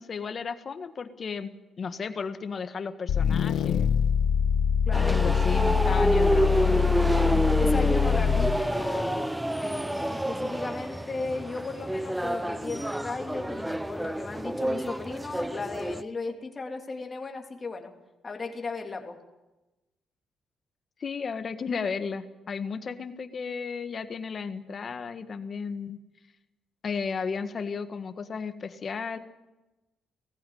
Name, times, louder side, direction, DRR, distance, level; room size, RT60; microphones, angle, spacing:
voice 1, 0.0-1.5 1.8-3.9 5.0-6.8 21.0-26.0 26.8-29.2, left 5 dB, 45° left, 10 dB, 1.6 m, -34 dB
sound 1, 3.1-8.7, left 7 dB, 75° left, 1.2 m, -24 dB
voice 2, 4.9-5.2 7.6-9.3 9.6-17.9 18.2-19.2, left 3 dB, 30° left, 3 dB, 3.1 m, -36 dB
sound 2, 4.9-16.0, right 1 dB, 5° right, 0.7 m, -28 dB
19.0 x 15.0 x 9.4 m, 1.0 s
cardioid pair, 90°, 0 cm